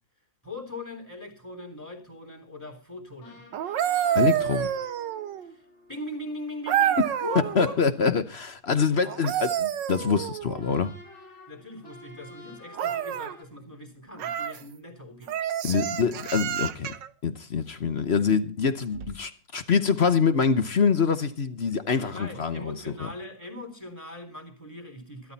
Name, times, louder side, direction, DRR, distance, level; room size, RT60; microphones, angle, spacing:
voice 1, 0.4-3.4 5.4-5.6 5.9-7.8 11.5-15.3 22.0-25.3, left 1 dB, 10° left, 3.5 m, -40 dB
sound 1, 3.2-8.0 10.5-13.4, left 1 dB, 85° left, 5.2 m, -50 dB
sound 2, 3.5-5.5 6.7-7.6 9.0-10.7 12.7-13.4 14.2-14.6 15.3-17.1 18.9-19.1, right 10 dB, 70° right, 1.5 m, -28 dB
voice 2, 4.1-4.7 7.0-7.2 7.6-10.9 15.6-16.9 17.2-23.1, left 5 dB, 45° left, 0.9 m, -25 dB
14.0 x 13.0 x 4.2 m
omnidirectional pair, 2.1 m